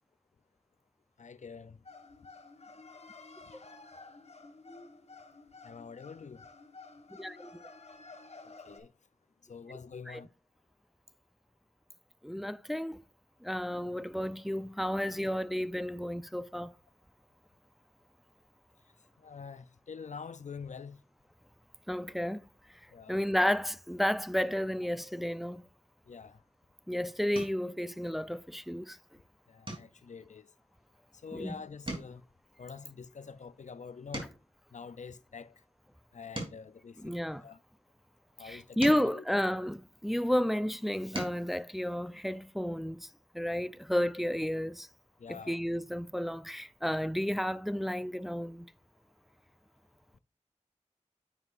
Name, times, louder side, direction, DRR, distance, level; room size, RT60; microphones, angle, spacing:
voice 1, 1.2-1.8 5.6-6.5 8.4-8.9 9.5-10.3 19.2-21.0 22.9-23.2 26.1-26.4 29.5-30.5 31.2-32.2 32.6-34.3 34.7-35.6 36.1-37.6 38.4-39.2 45.2-45.6, left 5 dB, 75° left, 0.4 m, -46 dB
sound 1, 1.8-8.8, left 3 dB, 60° left, 1.2 m, -52 dB
voice 2, 7.1-7.6 10.1-10.2 12.2-13.0 13.4-16.7 21.9-22.4 23.1-25.6 26.9-29.0 31.3-31.5 37.0-37.4 38.4-43.1 43.3-44.9 45.3-48.7, equal, ahead, 0.5 m, -32 dB
sound 2, 26.5-26.7 27.3-27.7 28.2-28.6 28.9-29.1 29.6-31.4 31.7-34.6 35.3-37.7 38.4-40.2 40.8-41.5 42.9-43.0 43.3-43.5, right 1 dB, 45° right, 3.1 m, -44 dB
9.5 x 7.2 x 2.5 m
wide cardioid pair, 50°, 12 cm